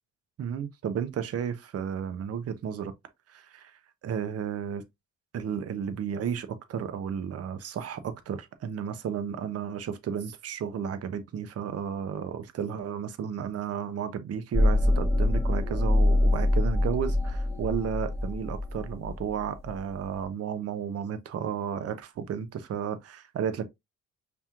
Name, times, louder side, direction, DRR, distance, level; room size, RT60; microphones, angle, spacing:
voice 1, 0.4-2.9 3.3-3.7 4.0-4.8 5.3-23.7, right 8 dB, 55° right, 0.7 m, -33 dB
sound 1, 14.5-20.0, left 1 dB, 10° right, 1.2 m, -25 dB
5.3 x 3.0 x 2.4 m
cardioid pair, 90°, 30 cm